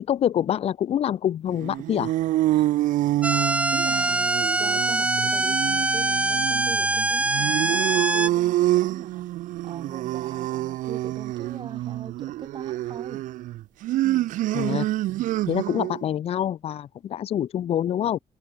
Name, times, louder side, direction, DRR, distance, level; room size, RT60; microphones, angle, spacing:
voice 1, 0.1-2.1 14.5-14.9 15.5-18.2, left 10 dB, 50° left, 0.7 m, -26 dB
sound 1, 1.5-16.0, right 15 dB, 85° right, 0.5 m, -27 dB
sound 2, 3.2-8.3, right 2 dB, 10° right, 1.2 m, -23 dB
voice 2, 3.3-9.3 9.6-13.2 14.0-14.3, right 6 dB, 35° right, 4.5 m, -42 dB
cardioid pair, 150°, 13 cm